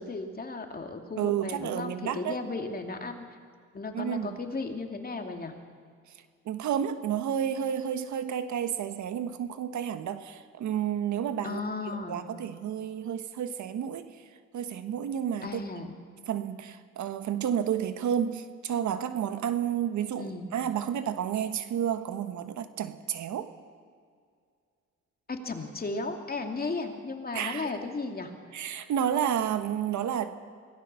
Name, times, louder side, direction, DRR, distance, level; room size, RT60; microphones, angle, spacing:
voice 1, 0.0-3.2 3.7-5.5 11.4-12.3 15.4-15.9 20.2-20.5 25.3-28.3, left 3 dB, 30° left, 4 dB, 2.7 m, -35 dB
voice 2, 1.2-2.4 3.9-4.3 6.4-11.6 11.9-14.1 14.5-15.6 16.3-23.5 27.3-27.7 28.5-30.3, right 9 dB, 70° right, 10 dB, 1.4 m, -31 dB
24.0 x 18.5 x 6.9 m, 2.1 s
cardioid pair, 90°, 30 cm